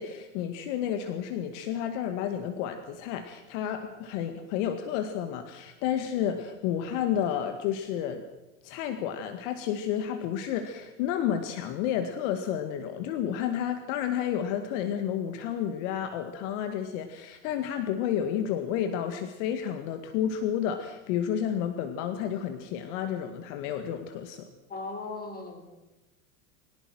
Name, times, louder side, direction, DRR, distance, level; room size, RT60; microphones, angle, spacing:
voice 1, 0.0-8.2 8.6-24.5, left 9 dB, 55° left, 8 dB, 2.0 m, -31 dB
voice 2, 24.7-25.8, left 3 dB, 20° left, 6 dB, 4.4 m, -38 dB
23.0 x 18.5 x 6.3 m, 1.1 s
supercardioid pair, 125°, 42 cm